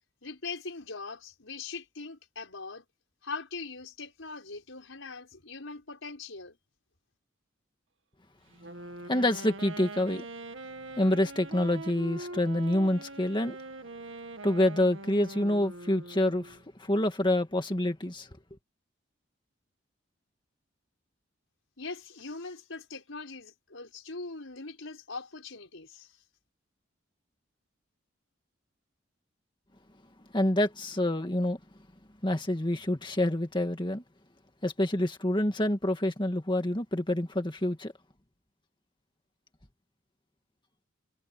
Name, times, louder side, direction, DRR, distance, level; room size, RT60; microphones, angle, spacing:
voice 1, 0.2-2.8 3.2-6.6 21.8-26.2, left 4 dB, 85° left, 5.0 m, -41 dB
Wind instrument woodwind instrument, 8.5-16.6, right 2 dB, 75° right, 2.1 m, -43 dB
voice 2, 9.1-10.3 11.0-13.6 14.4-18.3 30.3-31.6 32.2-34.0 34.6-37.9, left 1 dB, 25° left, 2.0 m, -27 dB
head